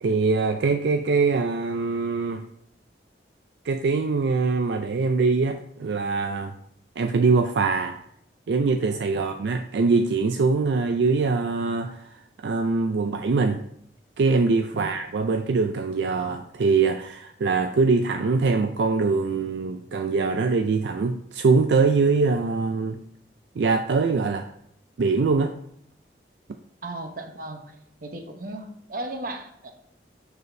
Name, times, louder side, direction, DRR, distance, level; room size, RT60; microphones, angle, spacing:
voice 1, 0.0-2.4 3.6-6.5 7.0-8.0 8.5-13.6 14.2-23.0 23.6-24.5 25.0-25.5, right 4 dB, 75° right, 6 dB, 0.4 m, -23 dB
voice 2, 26.8-27.8 28.0-29.7, right 2 dB, 55° right, 5 dB, 0.9 m, -36 dB
6.9 x 6.5 x 2.7 m, 0.70 s
head